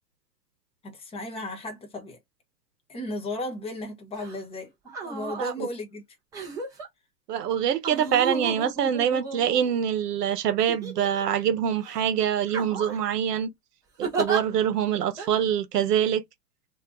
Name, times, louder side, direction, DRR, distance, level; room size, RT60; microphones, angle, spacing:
voice 1, 0.8-2.2 2.9-4.7 5.0-6.0, left 1 dB, 10° left, 0.8 m, -35 dB
sound 1, 4.2-4.4 4.9-5.5 6.3-6.9 7.8-9.9 10.7-11.4 11.8-12.0 12.5-13.1 14.0-14.4 15.2-15.3, right 4 dB, 10° right, 0.4 m, -33 dB
voice 2, 7.3-13.5 14.0-16.2, right 9 dB, 70° right, 0.9 m, -25 dB
2.6 x 2.2 x 3.6 m
hypercardioid pair, 110°, 49 cm